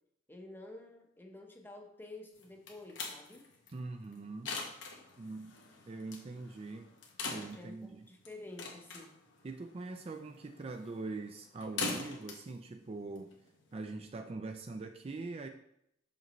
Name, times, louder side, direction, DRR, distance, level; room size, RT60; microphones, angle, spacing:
voice 1, 0.3-3.5 7.5-9.2, left 2 dB, 10° left, 3 dB, 0.8 m, -50 dB
sound 1, 2.4-13.8, left 3 dB, 85° left, 1.1 m, -44 dB
voice 2, 3.7-4.6 5.2-5.6 5.9-6.9 7.3-8.1 9.4-13.3 13.7-15.5, right 3 dB, 30° right, 5 dB, 0.4 m, -43 dB
6.3 x 5.1 x 3.0 m, 0.74 s
head